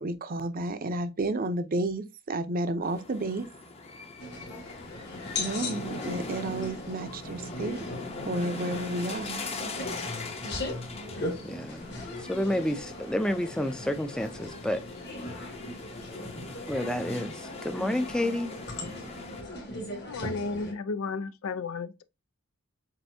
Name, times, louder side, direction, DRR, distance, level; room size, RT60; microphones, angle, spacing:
voice 1, 0.0-3.5 5.4-7.8 8.3-9.5 17.8-17.9, right 2 dB, 45° right, 0.6 m, -31 dB
sound 1, 2.8-19.4, left 3 dB, 30° left, 0.8 m, -42 dB
sound 2, 4.2-20.7, left 2 dB, 55° left, 2.1 m, -39 dB
voice 2, 11.4-11.9 12.2-14.8 16.6-18.5, left 1 dB, 5° left, 0.5 m, -30 dB
voice 3, 20.0-22.0, left 4 dB, 85° left, 0.5 m, -33 dB
7.6 x 2.6 x 2.6 m
head